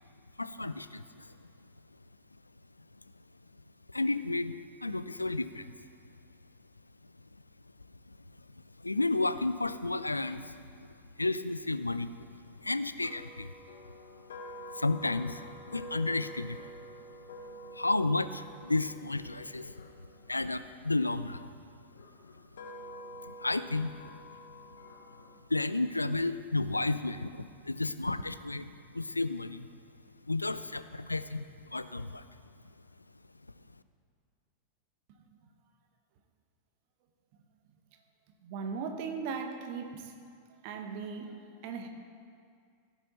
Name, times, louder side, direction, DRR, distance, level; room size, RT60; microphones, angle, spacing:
voice 1, 0.4-1.5 3.9-5.7 8.1-8.2 8.8-12.1 12.6-13.5 14.7-16.7 17.7-19.9 20.3-21.5 23.2-24.0 25.5-29.7 30.3-32.4, left 2 dB, 85° left, 13 dB, 0.3 m, -32 dB
sound 1, 13.0-21.2 21.9-25.4, equal, 65° left, 0.9 m, -48 dB
voice 2, 38.4-40.1 40.6-41.9, right 5 dB, 45° right, 5 dB, 1.1 m, -38 dB
16.0 x 6.1 x 4.1 m, 2.2 s
figure-of-eight pair, 90°, 0 cm